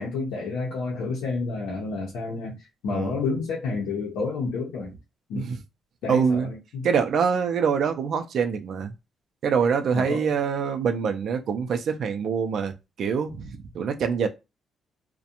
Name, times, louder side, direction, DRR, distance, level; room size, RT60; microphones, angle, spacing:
voice 1, 0.0-4.9 5.3-5.5 6.0-6.9 9.9-10.3, left 4 dB, 90° left, 0.6 m, -30 dB
voice 2, 6.1-6.5 6.8-8.9 9.4-12.7 13.0-14.3, right 6 dB, 65° right, 0.4 m, -25 dB
2.5 x 2.1 x 2.8 m
cardioid pair, 90°, 0 cm